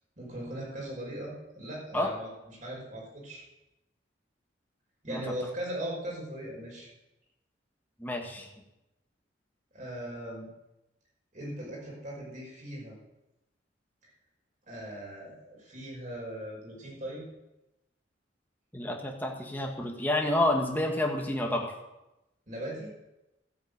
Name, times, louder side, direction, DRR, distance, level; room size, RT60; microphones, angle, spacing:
voice 1, 0.2-3.4 5.0-6.9 9.7-10.5 11.3-12.9 14.7-17.2 22.5-22.9, right 1 dB, 40° right, -3 dB, 5.5 m, -39 dB
voice 2, 8.0-8.5 18.7-21.7, left 1 dB, 10° left, 1 dB, 1.7 m, -29 dB
13.0 x 8.1 x 8.1 m, 0.95 s
head